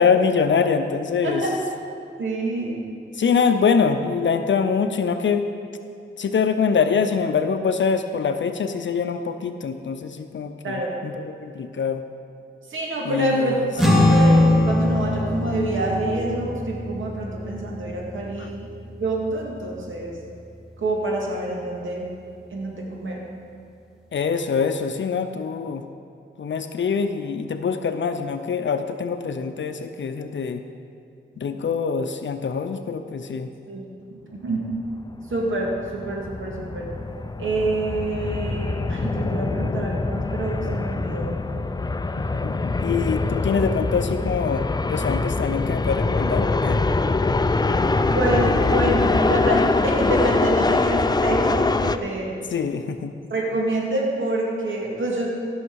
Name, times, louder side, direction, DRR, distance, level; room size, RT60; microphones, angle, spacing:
voice 1, 0.0-1.4 3.2-5.5 6.2-12.0 13.0-14.1 18.4-18.5 24.1-25.8 26.4-30.6 31.4-33.5 42.3-46.8 52.5-53.1, left 6 dB, 65° left, 8 dB, 0.6 m, -24 dB
voice 2, 1.2-1.6 2.2-2.9 10.6-10.9 12.7-18.7 19.0-20.1 20.8-22.1 22.5-23.2 31.3-31.6 33.7-34.7 35.3-36.9 37.4-41.3 48.1-52.4 53.3-55.3, right 2 dB, 70° right, -2 dB, 2.1 m, -27 dB
sound 1, 13.8-20.4, left 1 dB, ahead, 1.9 m, -22 dB
sound 2, 34.8-52.0, left 3 dB, 20° left, 0.4 m, -23 dB
16.0 x 6.4 x 4.7 m, 2.5 s
cardioid pair, 65°, 21 cm